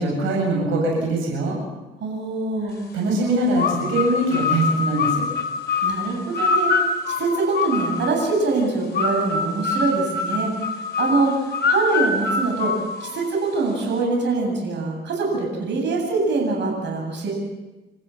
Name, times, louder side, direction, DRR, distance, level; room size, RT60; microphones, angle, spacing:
voice 1, 0.0-1.6 2.9-5.2, right 2 dB, 90° right, -1 dB, 7.8 m, -22 dB
voice 2, 2.0-2.8 5.8-10.5 11.0-12.7 13.0-17.3, right 3 dB, 65° right, 0 dB, 8.0 m, -24 dB
sound 1, 3.6-8.3 9.0-13.4, left 4 dB, 55° left, 4.7 m, -24 dB
29.5 x 14.5 x 7.3 m, 1.1 s
cardioid pair, 90°, 20 cm